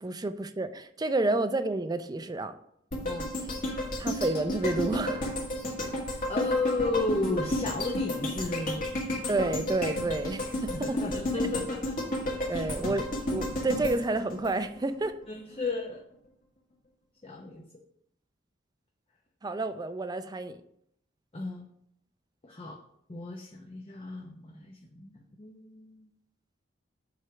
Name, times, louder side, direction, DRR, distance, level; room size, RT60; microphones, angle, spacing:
voice 1, 0.0-2.5 4.0-5.3 9.3-11.0 12.5-15.1 19.4-20.6, right 2 dB, 20° right, 11 dB, 0.4 m, -30 dB
sound 1, 2.9-15.1 15.5-15.6, left 1 dB, 50° left, 1.8 m, -32 dB
voice 2, 6.3-8.9 10.8-12.0 12.5-12.6 15.3-16.0 17.2-17.7 21.3-21.7 22.4-22.8 23.1-26.1, left 3 dB, 30° left, 1 dB, 0.7 m, -33 dB
7.5 x 3.4 x 6.0 m, 0.71 s
head